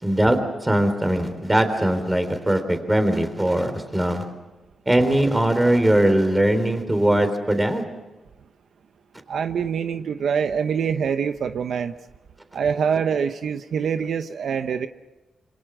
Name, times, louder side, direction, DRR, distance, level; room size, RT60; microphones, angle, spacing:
voice 1, 0.0-4.2 4.9-7.9, right 1 dB, 10° right, 8 dB, 3.7 m, -20 dB
voice 2, 9.3-11.9 12.5-14.9, right 7 dB, 70° right, 9 dB, 0.9 m, -25 dB
27.0 x 26.5 x 6.2 m, 1.1 s
wide cardioid pair, 120°, 0 cm